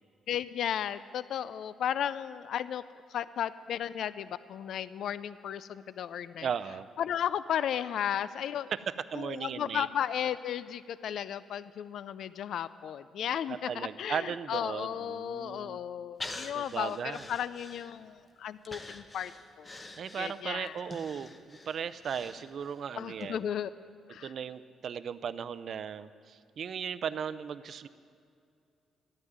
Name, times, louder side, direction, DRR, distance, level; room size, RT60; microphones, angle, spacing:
voice 1, 0.3-2.8 3.1-6.5 7.0-8.7 9.1-19.3 19.6-19.7 20.2-20.8 23.0-23.7 24.1-24.3, left 9 dB, 70° left, 15 dB, 0.4 m, -34 dB
voice 2, 6.4-6.9 8.7-8.8 9.1-9.9 13.5-15.8 16.5-17.3 20.0-23.5 24.2-27.9, right 7 dB, 60° right, 14 dB, 0.5 m, -37 dB
Breathing, 16.2-18.2 18.6-22.8 23.2-23.3, left 2 dB, 30° left, 1.2 m, -45 dB
13.0 x 9.8 x 9.4 m, 2.4 s
cardioid pair, 90°, 0 cm